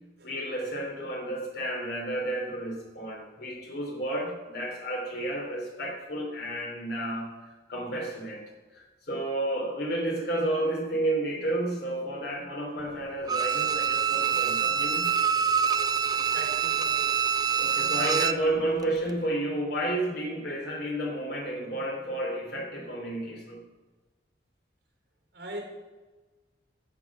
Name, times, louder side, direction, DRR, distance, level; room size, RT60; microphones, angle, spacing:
voice 1, 0.2-7.3 7.7-8.4 8.8-15.1 17.6-23.6, right 1 dB, 60° left, 2 dB, 3.0 m, -31 dB
Bowed string instrument, 13.3-18.5 18.8-18.9, right 7 dB, 20° right, 0.4 m, -26 dB
voice 2, 16.3-17.1 25.3-25.6, equal, 70° right, 1 dB, 4.3 m, -40 dB
14.5 x 7.2 x 6.0 m, 1.3 s
head